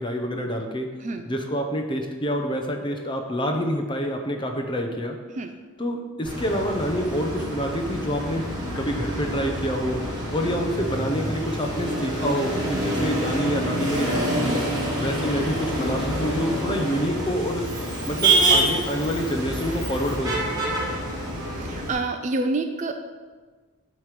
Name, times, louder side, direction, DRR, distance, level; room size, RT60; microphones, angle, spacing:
voice 1, 0.0-0.9 1.3-5.2 5.8-10.0 10.3-14.6 15.0-17.7 18.1-20.6, equal, 20° left, 4 dB, 0.6 m, -27 dB
Motor vehicle (road), 6.2-21.9, right 1 dB, 20° right, 1.8 m, -27 dB
voice 2, 21.5-22.9, right 2 dB, 35° right, 6 dB, 0.4 m, -27 dB
8.3 x 3.1 x 5.9 m, 1.4 s
head